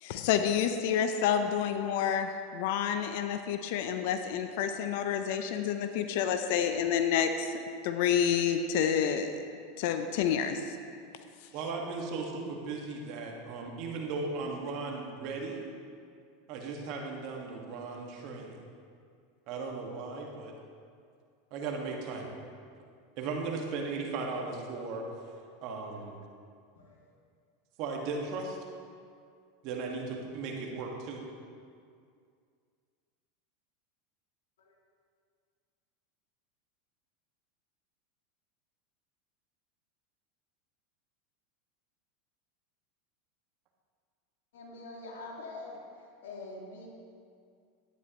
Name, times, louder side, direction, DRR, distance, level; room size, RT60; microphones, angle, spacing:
voice 1, 0.0-7.5 7.8-9.4 9.8-10.6, left 8 dB, 65° left, 8 dB, 0.6 m, -29 dB
voice 2, 11.5-15.6 16.5-18.6 19.5-20.5 21.5-22.3 23.2-25.0 25.6-26.2 27.8-28.6 29.6-31.2, right 4 dB, 55° right, 1 dB, 1.6 m, -36 dB
voice 3, 44.5-45.8 46.2-46.9, left 3 dB, 85° left, -2 dB, 2.0 m, -44 dB
11.5 x 9.5 x 3.0 m, 2.2 s
hypercardioid pair, 105°, 0 cm